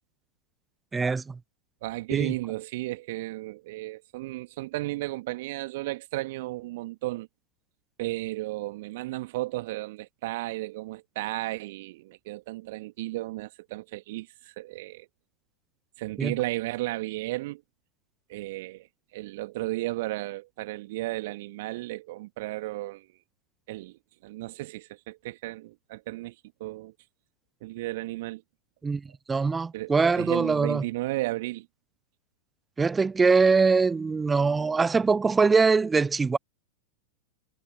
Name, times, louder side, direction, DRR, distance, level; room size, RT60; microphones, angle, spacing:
voice 1, 0.9-1.4 2.1-2.3 16.2-16.3 28.8-29.0 29.3-30.8 32.8-36.4, right 4 dB, 15° right, 0.9 m, -23 dB
voice 2, 1.8-7.3 8.0-15.1 16.0-17.6 18.3-18.9 19.1-23.1 23.7-26.4 26.6-26.9 27.6-28.4 29.7-31.7, right 19 dB, 50° right, 2.0 m, -34 dB
figure-of-eight pair, 90°, 0 cm